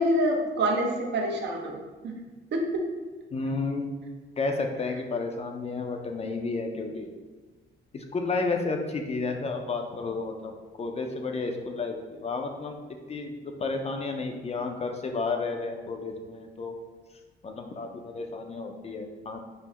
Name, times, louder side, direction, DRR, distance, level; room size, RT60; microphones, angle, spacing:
voice 1, 0.0-2.1 2.5-2.8, equal, 60° right, 1 dB, 0.7 m, -26 dB
voice 2, 3.3-3.9 4.4-7.1 7.9-10.5 10.8-12.8 13.1-16.7 17.4-19.4, left 3 dB, 35° left, 4 dB, 0.4 m, -31 dB
5.5 x 2.0 x 2.9 m, 1.3 s
cardioid pair, 90°, 20 cm